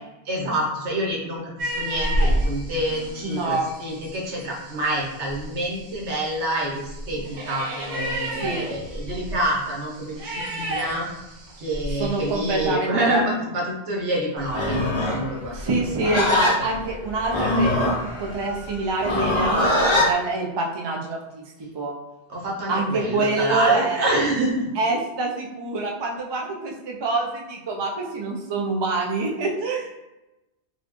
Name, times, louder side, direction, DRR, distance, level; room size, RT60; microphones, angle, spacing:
voice 1, 0.2-11.1 11.6-16.1 22.3-24.7, right 1 dB, 85° right, -2 dB, 1.2 m, -27 dB
sound 1, 1.6-12.7, right 1 dB, 70° right, 0.9 m, -31 dB
voice 2, 3.2-3.7 8.4-8.7 12.0-13.2 15.5-17.9 18.2-21.4 21.7-22.0 22.7-24.1 24.8-29.9, right 3 dB, 40° right, 0 dB, 0.4 m, -26 dB
Livestock farm animals working animals, 14.4-20.1, left 1 dB, 35° left, 0.5 m, -23 dB
4.1 x 2.3 x 3.0 m, 0.96 s
omnidirectional pair, 1.1 m